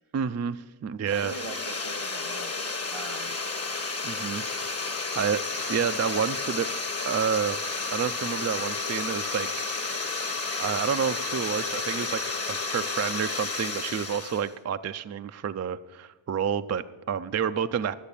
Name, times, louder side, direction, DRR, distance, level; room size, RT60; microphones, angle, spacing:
voice 1, 0.1-1.4 4.0-4.4 5.1-5.4 5.7-6.7 7.1-7.6 7.9-9.5 10.6-17.9, right 7 dB, 35° right, 11 dB, 0.4 m, -29 dB
sound 1, 1.1-14.5, left 3 dB, 30° left, 1.0 m, -32 dB
voice 2, 1.1-3.4, right 4 dB, 80° right, 9 dB, 1.4 m, -41 dB
12.0 x 8.0 x 8.3 m, 1.2 s
wide cardioid pair, 100°, 49 cm